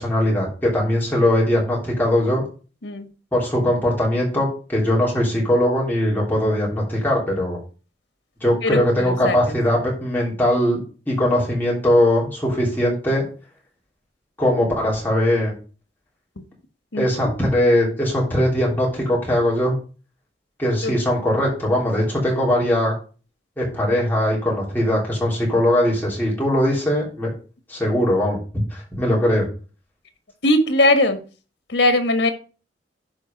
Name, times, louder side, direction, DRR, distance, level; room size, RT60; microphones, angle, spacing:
voice 1, 0.0-2.4 3.3-7.6 8.4-10.8 11.1-13.2 14.4-15.5 17.0-19.7 20.6-22.9 23.6-27.3 27.7-29.4, left 1 dB, 10° left, -4 dB, 3.3 m, -20 dB
voice 2, 8.6-9.5 16.9-17.0 20.8-20.9 30.4-31.2 31.7-32.3, left 1 dB, 85° left, 9 dB, 1.4 m, -19 dB
11.5 x 4.8 x 5.2 m, 0.37 s
head